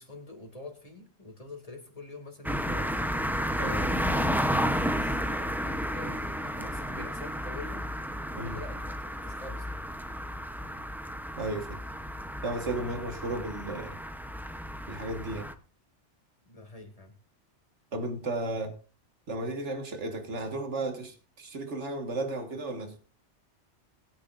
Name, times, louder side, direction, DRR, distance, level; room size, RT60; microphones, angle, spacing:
voice 1, 0.0-3.1 3.8-7.8 8.3-9.8 16.4-17.1, left 2 dB, 30° left, 2.5 m, -46 dB
sound 1, 2.4-15.5, equal, ahead, 0.6 m, -32 dB
voice 2, 3.6-3.9 8.4-8.6 11.4-11.8 12.4-14.0 14.9-15.5 17.9-18.8 19.3-23.0, right 2 dB, 75° right, 1.9 m, -34 dB
20.5 x 9.4 x 2.5 m
omnidirectional pair, 1.2 m